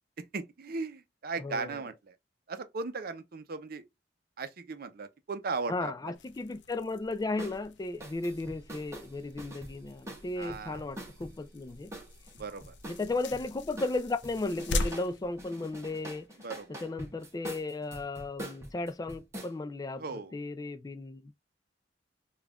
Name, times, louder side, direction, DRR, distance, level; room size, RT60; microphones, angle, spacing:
voice 1, 0.2-2.1 2.5-3.8 4.4-6.1 10.4-10.8 12.3-12.7 16.4-16.8 20.0-20.4, right 4 dB, 55° right, 0.6 m, -37 dB
voice 2, 1.4-1.8 5.7-11.9 12.9-16.3 16.8-20.0 20.3-21.3, left 2 dB, 20° left, 0.3 m, -35 dB
sound 1, 6.1-16.3, left 2 dB, 75° left, 0.5 m, -41 dB
sound 2, 7.4-7.6 8.0-11.3 11.9-13.4 13.8-15.1 15.4-19.5, right 1 dB, 15° right, 0.9 m, -44 dB
5.2 x 2.3 x 2.3 m
head